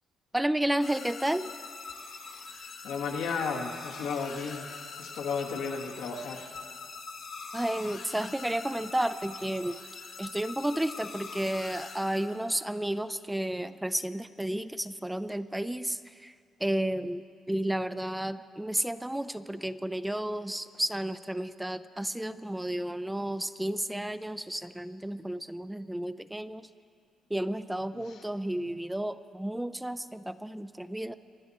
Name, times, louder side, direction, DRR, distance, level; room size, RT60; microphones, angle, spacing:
voice 1, 0.3-1.5 7.5-9.8 10.2-16.3 16.6-26.7 27.3-31.1, right 1 dB, 5° right, 12 dB, 0.4 m, -32 dB
sound 1, 0.8-12.7, left 4 dB, 60° left, 1.5 m, -43 dB
voice 2, 2.8-6.5 27.9-28.2, left 5 dB, 90° left, 1 dB, 1.8 m, -34 dB
26.0 x 10.5 x 4.2 m, 2.2 s
cardioid pair, 90°, 0 cm